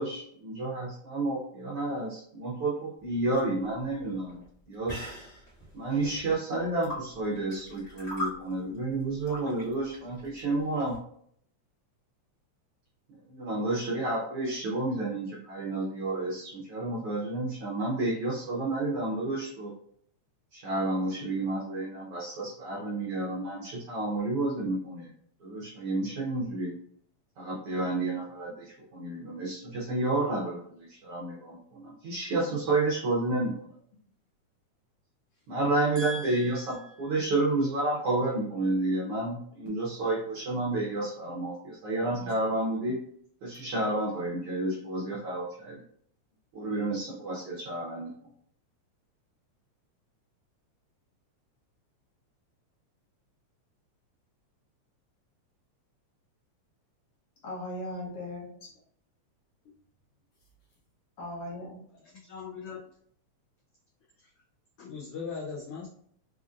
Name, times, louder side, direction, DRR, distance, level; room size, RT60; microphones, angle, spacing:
voice 1, 0.0-4.4 4.7-5.0 5.7-11.0 13.3-19.7 20.5-25.1 25.4-26.7 27.4-33.7 35.5-43.0 43.4-45.8 46.5-48.1, right 2 dB, 70° right, -5 dB, 1.4 m, -30 dB
sound 1, 3.0-11.0, equal, 40° left, 0.9 m, -42 dB
voice 2, 36.0-37.1 42.0-42.3 57.4-58.7 61.2-61.8, equal, 65° left, -4 dB, 1.6 m, -39 dB
voice 3, 62.3-62.8 64.8-65.9, left 5 dB, 85° left, -5 dB, 1.2 m, -38 dB
4.9 x 2.5 x 2.4 m, 0.64 s
omnidirectional pair, 3.3 m